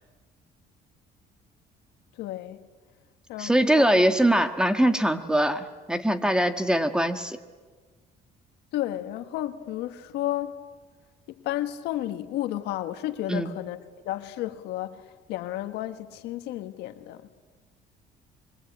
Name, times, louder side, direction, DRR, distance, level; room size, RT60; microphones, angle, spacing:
voice 1, 2.2-2.6 3.3-4.1 8.7-10.6 11.3-13.8 14.0-17.2, left 13 dB, 90° left, 9 dB, 1.6 m, -32 dB
voice 2, 3.4-7.4 13.3-13.5, right 1 dB, 5° right, 9 dB, 1.6 m, -22 dB
25.0 x 23.0 x 8.9 m, 1.4 s
cardioid pair, 110°, 17 cm